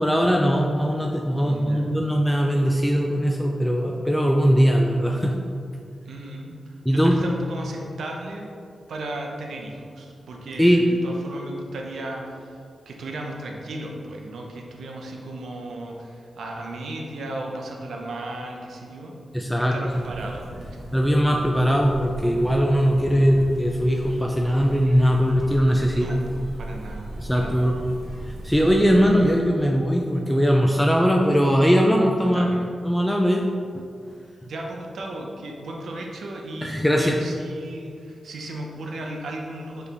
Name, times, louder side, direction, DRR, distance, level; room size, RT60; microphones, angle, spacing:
voice 1, 0.0-5.4 6.9-7.2 10.6-10.8 19.3-19.8 20.9-26.1 27.2-27.8 28.4-32.5 32.8-33.4 36.6-37.2, equal, 5° left, 0 dB, 0.3 m, -20 dB
voice 2, 1.4-1.9 6.1-8.5 8.9-12.6 12.9-19.2 19.7-20.5 25.9-27.7 32.2-32.6 34.4-39.9, right 1 dB, 80° right, 0 dB, 0.6 m, -35 dB
sound 1, 19.9-29.4, right 1 dB, 50° right, 1.4 m, -37 dB
4.8 x 3.2 x 3.3 m, 2.3 s
cardioid pair, 85°, 0 cm